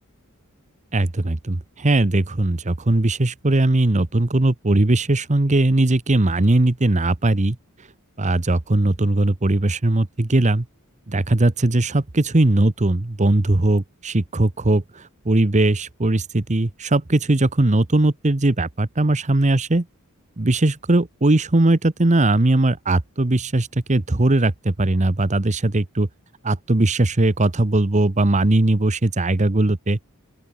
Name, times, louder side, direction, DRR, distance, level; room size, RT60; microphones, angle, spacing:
voice 1, 0.9-7.6 8.2-10.7 11.1-19.9 20.4-26.1 26.4-30.0, right 2 dB, 35° right, 1.0 m, -19 dB
open air
head